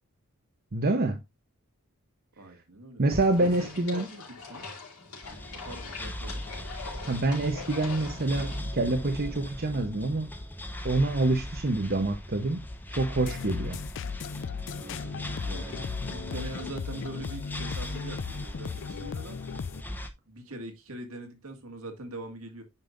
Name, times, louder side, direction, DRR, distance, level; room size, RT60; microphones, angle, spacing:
voice 1, 0.7-1.2 3.0-4.1 7.1-10.3 10.8-12.6 13.0-13.8, right 2 dB, 45° right, 0.9 m, -26 dB
voice 2, 2.4-3.0 3.4-4.7 5.5-6.5 14.8-19.4 20.3-22.6, right 2 dB, 75° right, 2.0 m, -43 dB
sound 1, 3.1-8.6, left 3 dB, 80° left, 3.6 m, -42 dB
sound 2, 5.2-20.1, left 1 dB, 10° left, 0.9 m, -39 dB
sound 3, 13.2-19.8, left 6 dB, 55° left, 0.4 m, -36 dB
9.5 x 5.3 x 2.6 m
head